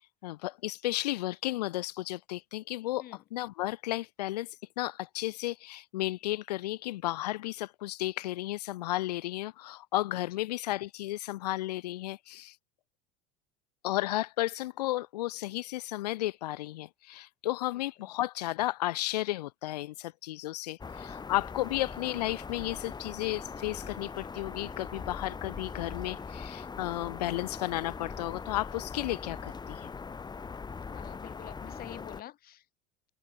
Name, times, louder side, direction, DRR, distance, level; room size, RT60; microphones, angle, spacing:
voice 1, 0.2-3.0 3.3-12.5 13.8-29.9, left 16 dB, 90° left, 3.8 m, -33 dB
voice 2, 17.7-18.1 30.9-32.7, left 13 dB, 50° left, 5.8 m, -48 dB
sound 1, 20.8-32.2, left 5 dB, 20° left, 3.5 m, -41 dB
open air
supercardioid pair, 105°, 20 cm